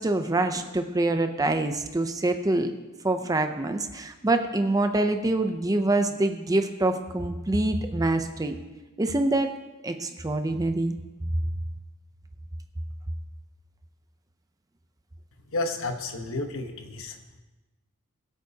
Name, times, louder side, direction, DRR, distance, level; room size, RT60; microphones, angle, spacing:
voice 1, 0.0-2.7 3.0-8.6 9.0-9.5 9.8-11.0, right 2 dB, 15° right, 7 dB, 0.6 m, -25 dB
voice 2, 15.5-17.1, left 2 dB, 65° left, 6 dB, 1.1 m, -31 dB
21.5 x 8.2 x 2.9 m, 1.2 s
head